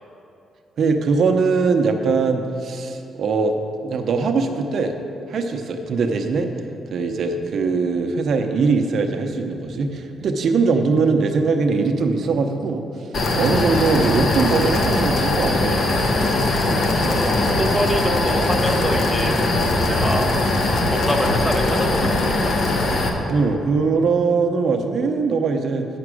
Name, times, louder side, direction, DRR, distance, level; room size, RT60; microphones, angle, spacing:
voice 1, 0.8-3.5 3.8-4.9 5.3-6.5 6.9-12.8 13.3-15.8 23.2-25.9, right 4 dB, 55° right, 4 dB, 0.6 m, -21 dB
sound 1, 13.1-23.1, left 2 dB, 55° left, 1.0 m, -20 dB
voice 2, 17.1-19.4 19.9-20.3 20.9-22.5, equal, 5° left, 4 dB, 0.7 m, -25 dB
8.6 x 5.9 x 6.2 m, 2.8 s
cardioid pair, 125°, 0 cm